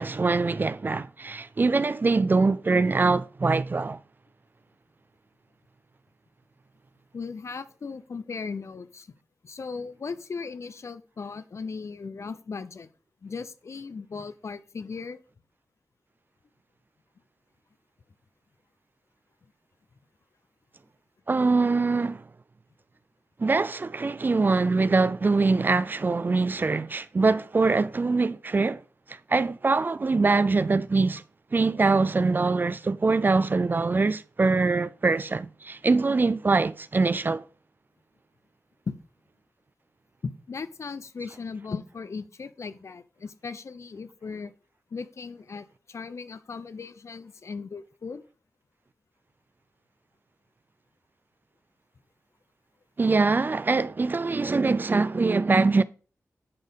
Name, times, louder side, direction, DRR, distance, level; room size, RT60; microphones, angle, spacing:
voice 1, 0.0-4.0 21.3-22.2 23.4-28.8 29.1-31.2 31.5-37.4 53.0-55.8, right 3 dB, 35° right, 0.4 m, -23 dB
voice 2, 7.1-9.1 9.4-12.9 13.2-15.2 38.9-39.0 40.2-44.5 44.9-48.2, left 5 dB, 60° left, 0.7 m, -37 dB
9.7 x 4.4 x 5.2 m
wide cardioid pair, 105°, 5 cm